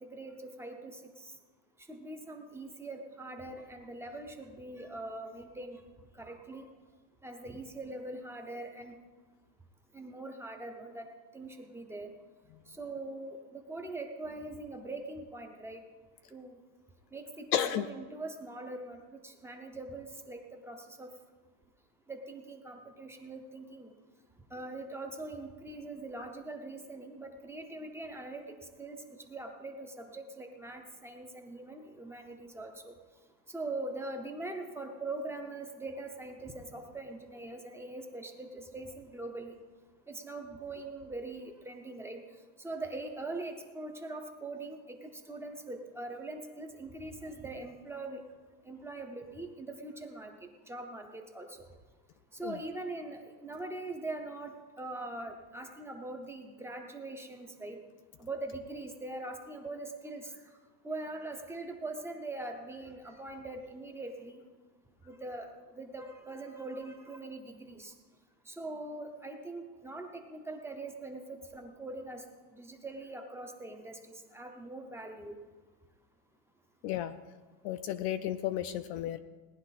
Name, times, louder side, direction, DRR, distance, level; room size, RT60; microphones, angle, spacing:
voice 1, 0.0-1.3 1.9-5.8 6.2-6.7 7.2-9.0 9.9-11.1 11.3-12.1 12.7-15.8 16.3-16.6 17.1-21.1 22.1-23.9 24.5-28.5 28.8-29.0 29.3-32.9 33.5-39.5 40.1-42.2 42.6-48.2 48.6-50.3 50.7-51.6 52.3-57.8 58.2-60.3 60.8-64.4 65.1-67.9 68.5-72.2 72.5-75.3, right 2 dB, 5° right, 4 dB, 0.6 m, -42 dB
voice 2, 17.5-17.9 52.4-52.6 76.8-77.1 77.6-79.2, left 12 dB, 45° left, 10 dB, 0.4 m, -32 dB
18.0 x 11.0 x 4.1 m, 1.3 s
cardioid pair, 170°, 45 cm